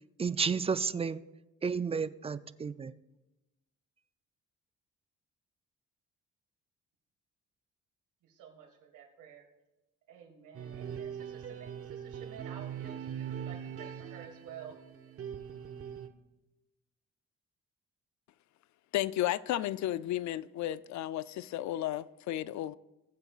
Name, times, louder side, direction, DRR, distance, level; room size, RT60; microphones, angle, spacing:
voice 1, 0.2-1.2 1.6-2.9, right 5 dB, 20° right, 0.3 m, -31 dB
voice 2, 8.4-9.4 10.1-14.8, right 8 dB, 85° right, 1.8 m, -51 dB
sound 1, 10.5-16.1, right 8 dB, 50° right, 0.9 m, -41 dB
voice 3, 18.9-22.7, left 13 dB, 70° left, 0.4 m, -33 dB
20.5 x 7.9 x 2.4 m
cardioid pair, 90°, 30 cm